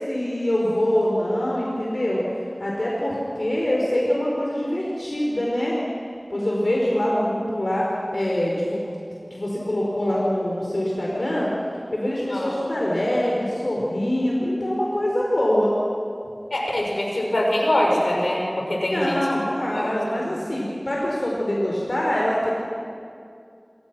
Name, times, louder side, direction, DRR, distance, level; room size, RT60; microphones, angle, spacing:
voice 1, 0.1-2.2 2.6-5.8 6.3-8.8 9.3-11.5 11.9-15.8 18.8-22.5, left 1 dB, 70° left, -4 dB, 4.8 m, -24 dB
voice 2, 16.5-19.2 19.7-19.9, left 1 dB, 85° left, -2 dB, 6.7 m, -23 dB
28.0 x 26.0 x 6.3 m, 2.4 s
wide cardioid pair, 45°, 0 cm